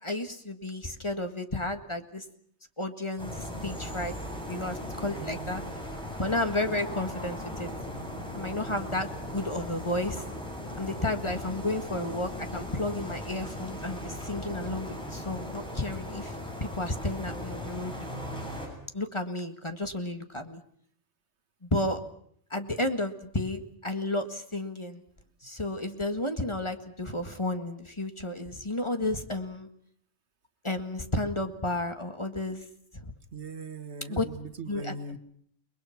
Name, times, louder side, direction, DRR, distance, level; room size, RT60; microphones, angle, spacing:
voice 1, 0.0-2.2 2.8-4.1 4.5-5.6 6.2-7.7 8.3-10.2 10.8-16.3 16.6-17.9 18.9-20.6 21.6-22.0 22.5-25.0 25.4-29.7 30.6-32.6 33.0-33.1 34.1-34.3 34.7-34.9, left 1 dB, 25° left, 6 dB, 1.8 m, -32 dB
sound 1, 3.2-18.7, left 1 dB, 5° left, 7.6 m, -38 dB
voice 2, 5.0-5.6 33.3-35.2, right 3 dB, 70° right, 11 dB, 1.8 m, -40 dB
30.0 x 21.0 x 5.9 m, 0.63 s
omnidirectional pair, 1.2 m